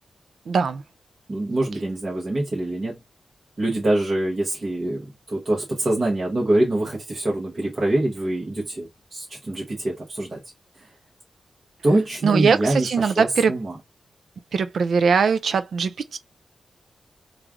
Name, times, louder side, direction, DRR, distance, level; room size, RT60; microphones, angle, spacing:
voice 1, 0.5-0.8 12.2-13.5 14.5-16.2, right 5 dB, 65° right, 0.4 m, -21 dB
voice 2, 1.3-3.0 3.6-10.4 10.7-10.9 11.8-13.8, right 1 dB, 30° right, 1.0 m, -24 dB
3.2 x 2.4 x 3.5 m
wide cardioid pair, 180°, 0 cm